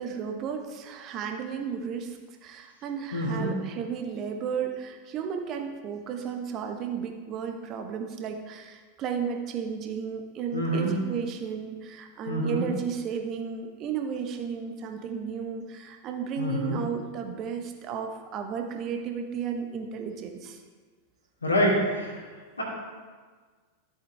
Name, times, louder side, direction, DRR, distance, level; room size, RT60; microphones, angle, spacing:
voice 1, 0.0-20.6, right 6 dB, 35° right, 4 dB, 1.2 m, -34 dB
voice 2, 3.1-3.5 10.5-10.9 12.3-12.6 16.4-16.8 21.4-22.1 22.6-22.7, equal, 80° left, -5 dB, 2.8 m, -26 dB
13.5 x 8.0 x 3.5 m, 1.5 s
figure-of-eight pair, 90°, 0 cm